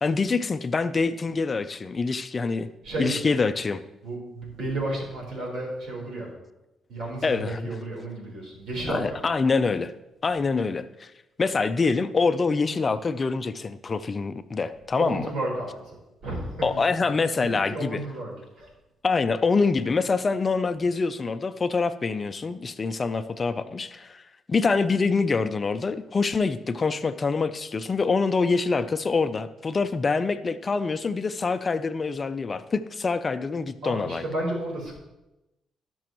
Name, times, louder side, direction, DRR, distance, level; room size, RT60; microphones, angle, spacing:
voice 1, 0.0-2.7 3.0-3.8 7.2-7.6 8.9-9.9 10.2-11.1 11.4-15.3 16.6-18.0 19.0-24.2 24.5-34.2, left 4 dB, 35° left, 11 dB, 0.5 m, -25 dB
voice 2, 2.8-3.3 4.0-6.3 6.9-9.2 14.9-15.9 16.2-16.8 17.4-18.7 33.8-34.9, right 1 dB, 70° right, -2 dB, 3.9 m, -32 dB
17.0 x 6.2 x 3.0 m, 0.98 s
cardioid pair, 90°, 0 cm